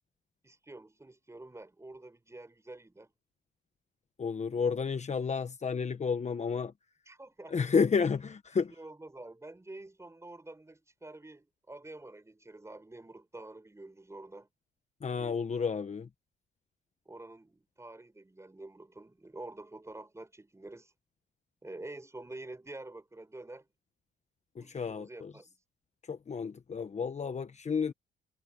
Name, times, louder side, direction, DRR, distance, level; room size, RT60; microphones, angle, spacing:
voice 1, 0.4-3.1 7.1-7.5 8.8-14.5 15.1-15.4 17.0-20.9 21.6-23.7 24.6-25.6, right 2 dB, 15° right, 6.3 m, -48 dB
voice 2, 4.2-6.7 7.5-8.7 15.0-16.1 24.5-25.3 26.1-27.9, left 5 dB, 35° left, 1.2 m, -31 dB
cardioid pair, 90°, 20 cm